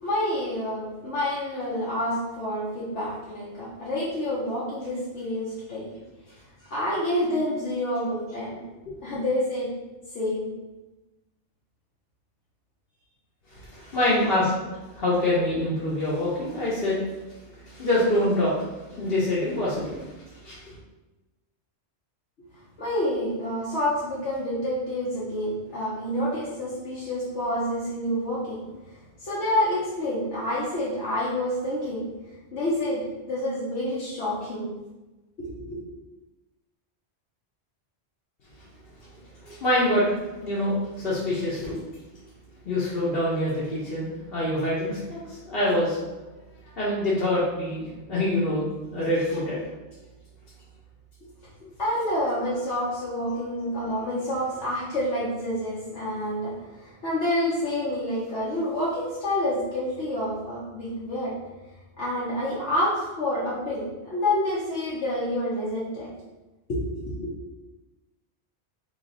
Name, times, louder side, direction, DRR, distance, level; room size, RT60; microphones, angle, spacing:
voice 1, 0.0-6.0 6.3-6.4 6.7-8.6 9.0-9.7 10.1-10.5 13.8-14.0 22.8-32.1 32.5-34.7 35.4-35.8 51.2-51.3 51.8-61.3 62.0-66.1 66.7-67.3, left 1 dB, 85° left, -8 dB, 1.2 m, -28 dB
voice 2, 13.5-14.5 14.8-17.0 17.3-18.6 18.9-20.1 20.4-20.8 39.0-40.0 40.4-41.8 42.6-46.0 46.8-49.6 53.9-54.0, left 1 dB, 60° left, -8 dB, 1.1 m, -26 dB
3.3 x 2.9 x 3.9 m, 1.1 s
omnidirectional pair, 1.1 m